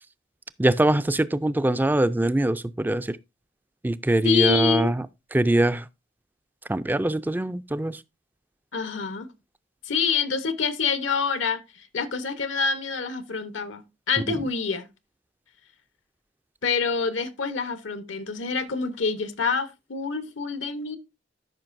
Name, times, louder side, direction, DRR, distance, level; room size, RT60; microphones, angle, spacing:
voice 1, 0.6-3.2 3.8-5.0 5.3-5.9 6.7-8.0, right 1 dB, 10° right, 0.3 m, -23 dB
voice 2, 4.2-4.9 8.7-9.3 9.8-14.9 16.6-21.0, left 5 dB, 80° left, 1.0 m, -26 dB
13.5 x 5.8 x 2.6 m
head